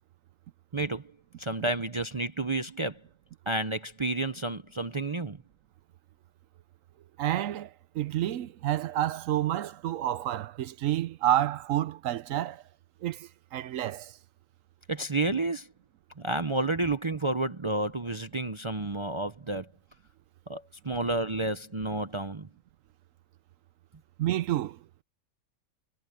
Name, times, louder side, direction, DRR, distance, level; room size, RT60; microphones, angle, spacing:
voice 1, 0.7-1.1 1.4-3.0 3.5-5.4 14.9-15.7 16.2-19.7 20.5-22.5, right 2 dB, 40° right, 0.4 m, -30 dB
voice 2, 7.2-12.6 13.0-14.2 24.2-25.0, right 12 dB, 70° right, 0.9 m, -29 dB
omnidirectional pair, 1.5 m